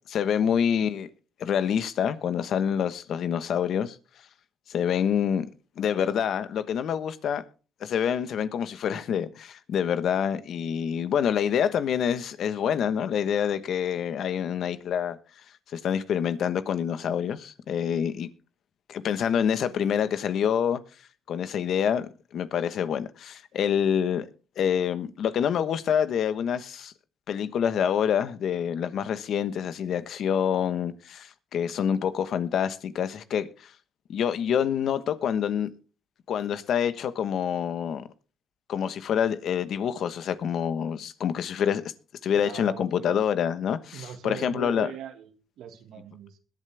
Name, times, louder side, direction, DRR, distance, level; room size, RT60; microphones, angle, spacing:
voice 1, 0.1-1.1 1.4-4.0 4.7-5.5 5.8-7.4 7.8-15.2 15.7-18.3 18.9-20.8 21.3-24.3 24.6-26.9 27.3-33.7 34.1-35.7 36.3-38.0 38.7-41.8 42.2-44.9, left 8 dB, 70° left, 1.2 m, -27 dB
voice 2, 42.3-43.3 43.9-45.3 45.6-46.4, right 9 dB, 80° right, 1.8 m, -40 dB
21.0 x 7.9 x 3.4 m
cardioid pair, 90°, 0 cm